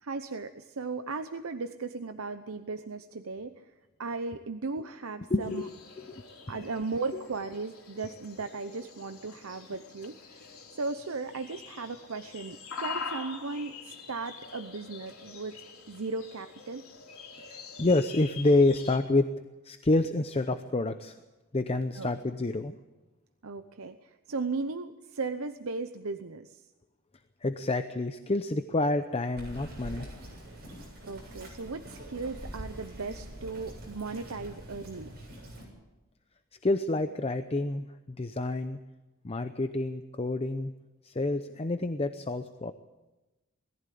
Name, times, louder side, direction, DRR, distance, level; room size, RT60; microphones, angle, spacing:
voice 1, 0.0-3.7 4.0-5.7 6.5-10.5 10.7-15.6 15.9-16.9 21.9-22.1 23.4-26.6 31.1-35.1, right 3 dB, 85° right, 9 dB, 0.8 m, -36 dB
voice 2, 5.3-5.7 6.0-6.2 17.5-19.3 19.6-21.1 21.5-22.8 27.4-30.1 36.6-38.8 39.2-40.7 41.0-42.7, left 2 dB, 30° left, 9 dB, 0.7 m, -28 dB
sound 1, 5.4-19.0, left 5 dB, 85° left, 3.9 m, -45 dB
Bird vocalization bird call bird song, 29.4-35.6, right 1 dB, 50° right, 7.9 m, -44 dB
21.0 x 15.0 x 8.5 m, 1.1 s
head